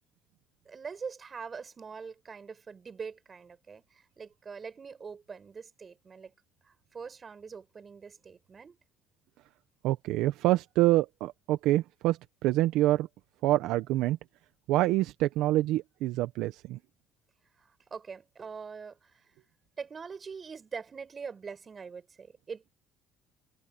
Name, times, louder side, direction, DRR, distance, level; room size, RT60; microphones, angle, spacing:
voice 1, 0.7-6.3 6.6-8.8 17.6-19.3 19.8-22.7, right 5 dB, 35° right, 5.6 m, -43 dB
voice 2, 9.8-13.1 13.4-14.2 14.7-16.8, right 16 dB, 75° right, 1.2 m, -26 dB
supercardioid pair, 80°, 0 cm